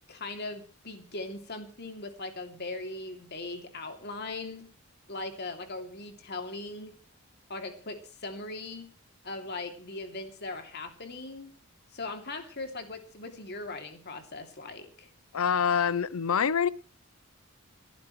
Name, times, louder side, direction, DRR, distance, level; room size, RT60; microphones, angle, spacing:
voice 1, 0.1-4.7 5.1-7.0 7.5-8.9 9.2-11.5 11.9-15.1, left 2 dB, 50° left, 2.9 m, -39 dB
voice 2, 15.3-16.7, left 7 dB, 80° left, 0.7 m, -25 dB
28.5 x 11.5 x 3.2 m
head